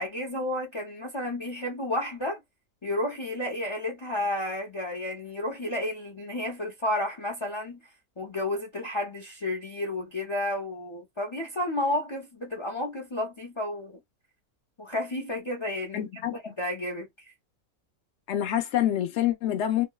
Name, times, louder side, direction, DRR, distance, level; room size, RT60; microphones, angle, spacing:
voice 1, 0.0-2.4 2.8-7.8 8.2-14.0 14.8-17.1, left 1 dB, 30° left, 0.5 m, -31 dB
voice 2, 15.9-16.5 18.3-19.9, left 11 dB, 60° left, 0.8 m, -27 dB
2.9 x 2.1 x 2.3 m
omnidirectional pair, 1.5 m